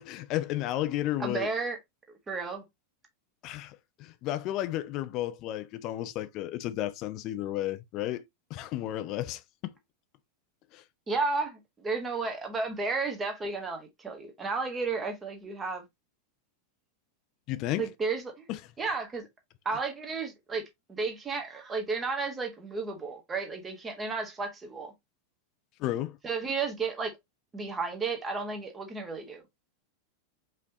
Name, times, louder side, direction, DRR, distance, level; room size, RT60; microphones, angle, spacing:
voice 1, 0.0-1.5 3.4-8.2 8.5-9.7 10.7-10.8 17.5-17.9 18.5-18.6 25.8-26.2, left 14 dB, 40° left, 0.5 m, -33 dB
voice 2, 1.2-1.8 2.3-2.6 11.1-15.8 17.7-18.4 18.8-19.3 19.6-20.6 20.9-24.9 26.2-27.1 27.5-29.4, right 4 dB, 15° right, 1.5 m, -33 dB
5.2 x 3.2 x 2.7 m
figure-of-eight pair, 90°, 0 cm